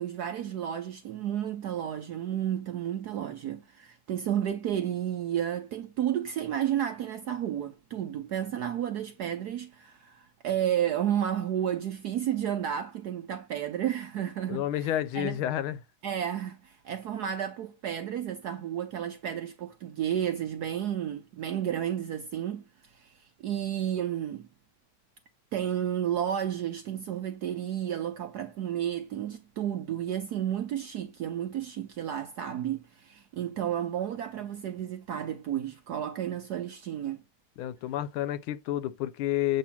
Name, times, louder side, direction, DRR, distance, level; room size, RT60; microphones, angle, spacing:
voice 1, 0.0-14.9 15.1-15.4 16.0-24.5 25.5-37.2, right 10 dB, 70° right, 0.9 m, -32 dB
voice 2, 14.5-15.8 37.6-39.6, left 12 dB, 80° left, 1.4 m, -30 dB
7.7 x 3.1 x 5.7 m
omnidirectional pair, 2.3 m